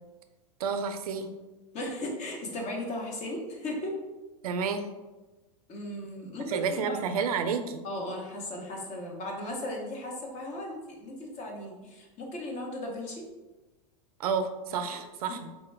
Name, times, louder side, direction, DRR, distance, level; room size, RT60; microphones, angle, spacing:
voice 1, 0.6-1.3 4.4-4.9 6.5-7.8 14.2-15.5, right 5 dB, 85° right, 8 dB, 0.4 m, -30 dB
voice 2, 1.7-3.9 5.7-7.0 7.8-13.2 14.9-15.0, left 1 dB, 40° left, 0 dB, 0.9 m, -36 dB
4.3 x 2.2 x 3.3 m, 1.2 s
hypercardioid pair, 120°, 19 cm